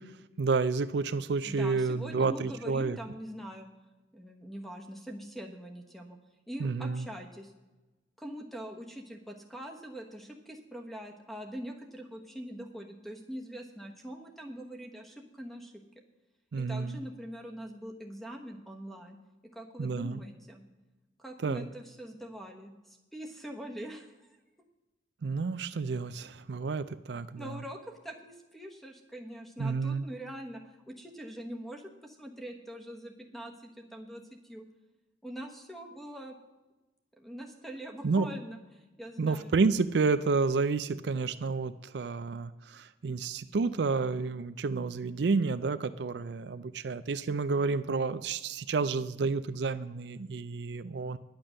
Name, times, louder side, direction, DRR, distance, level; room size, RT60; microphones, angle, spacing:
voice 1, 0.4-3.0 6.6-7.0 16.5-17.0 19.8-20.2 21.4-21.7 25.2-27.5 29.6-30.0 38.0-38.3 39.2-51.2, right 4 dB, 70° right, 13 dB, 0.4 m, -30 dB
voice 2, 1.4-3.7 4.1-6.2 6.5-7.5 8.2-15.7 16.5-19.2 19.5-20.6 21.2-24.4 27.4-34.6 35.2-36.3 37.2-39.6, equal, ahead, 4 dB, 1.2 m, -43 dB
10.5 x 8.8 x 6.3 m, 1.1 s
head